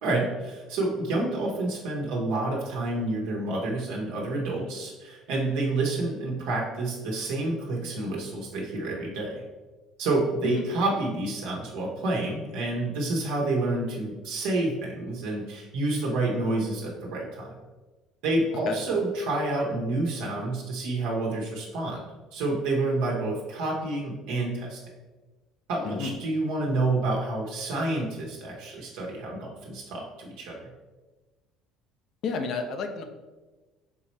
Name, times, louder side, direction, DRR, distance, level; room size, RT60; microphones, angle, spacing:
voice 1, 0.0-9.4 10.0-17.5 18.2-22.1 22.3-24.8 25.7-30.7, right 2 dB, 80° right, -2 dB, 0.9 m, -29 dB
voice 2, 25.8-26.2 32.2-33.0, left 4 dB, 60° left, 6 dB, 0.5 m, -30 dB
3.7 x 3.0 x 4.2 m, 1.2 s
supercardioid pair, 95°, 0 cm